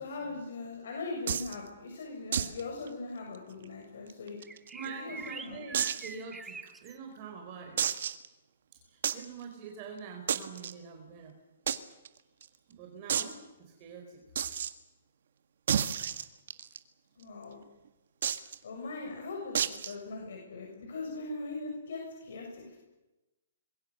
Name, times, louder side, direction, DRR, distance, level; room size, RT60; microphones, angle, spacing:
voice 1, 0.0-4.4 4.9-5.2 5.4-5.7 17.2-17.6 18.6-22.8, left 3 dB, 75° left, 0 dB, 6.9 m, -40 dB
sound 1, 1.3-1.5 2.3-2.6 2.9-3.0 3.3-3.4 4.1-4.9 5.7-6.1 6.7-6.8 7.8-8.3 9.0-9.2 10.3-10.7 11.7-11.8 12.0-12.1 12.4-12.5 13.1-13.3 14.3-14.7 15.7-16.8 18.2-18.5 19.5-19.9, right 8 dB, 65° right, 1.6 m, -30 dB
sound 2, 4.4-7.0, right 4 dB, 10° right, 0.8 m, -45 dB
voice 2, 4.7-7.8 8.8-11.3 12.7-14.2, right 5 dB, 35° right, 2 dB, 4.4 m, -45 dB
26.0 x 22.5 x 6.7 m, 1.0 s
hypercardioid pair, 155°, 0 cm